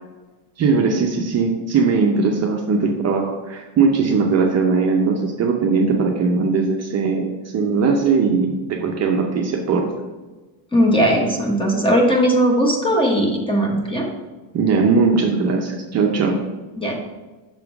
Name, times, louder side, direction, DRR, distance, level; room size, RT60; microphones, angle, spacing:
voice 1, 0.6-9.9 14.5-16.4, right 4 dB, 35° right, 1 dB, 0.6 m, -19 dB
voice 2, 10.7-14.1 16.8-17.0, equal, 10° left, -1 dB, 0.9 m, -18 dB
6.0 x 3.6 x 5.9 m, 1.2 s
cardioid pair, 160°, 45 cm